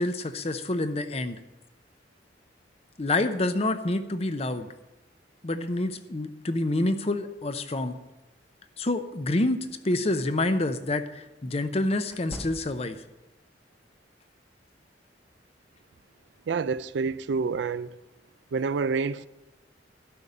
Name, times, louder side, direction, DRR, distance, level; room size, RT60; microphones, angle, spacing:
voice 1, 0.0-1.4 3.0-4.7 5.4-8.0 8.8-13.0, left 2 dB, 35° left, 0.7 m, -27 dB
sound 1, 9.8-10.0 12.1-13.1, equal, 5° right, 0.8 m, -42 dB
voice 2, 16.5-17.9 18.5-19.3, right 5 dB, 75° right, 0.4 m, -28 dB
12.5 x 5.3 x 8.6 m
head